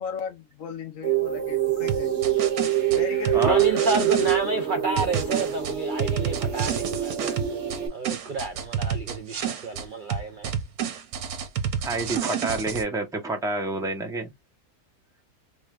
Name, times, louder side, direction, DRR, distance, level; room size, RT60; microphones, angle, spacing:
voice 1, 0.0-2.4 2.9-4.3, left 6 dB, 60° left, 1.2 m, -37 dB
sound 1, 1.0-7.9, right 10 dB, 50° right, 1.1 m, -25 dB
sound 2, 1.9-4.4 5.0-9.8 10.1-12.8, right 8 dB, 70° right, 1.2 m, -29 dB
voice 2, 3.4-7.4 7.9-10.5, right 3 dB, 85° right, 0.4 m, -29 dB
voice 3, 11.8-14.3, right 2 dB, 5° right, 0.6 m, -28 dB
4.0 x 3.3 x 2.4 m
omnidirectional pair, 1.7 m